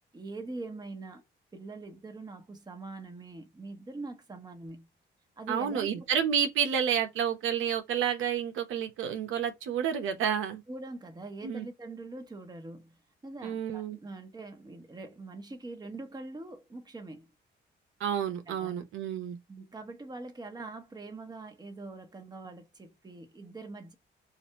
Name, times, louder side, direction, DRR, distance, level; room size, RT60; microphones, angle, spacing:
voice 1, 0.1-1.2 1.5-4.9 5.4-6.1 10.7-17.3 18.5-18.8 19.5-24.0, right 2 dB, 20° right, 1.2 m, -43 dB
voice 2, 5.5-10.6 11.4-11.7 13.4-14.0 18.0-19.4, right 8 dB, 85° right, 1.0 m, -30 dB
3.9 x 2.6 x 4.1 m
cardioid pair, 90°, 20 cm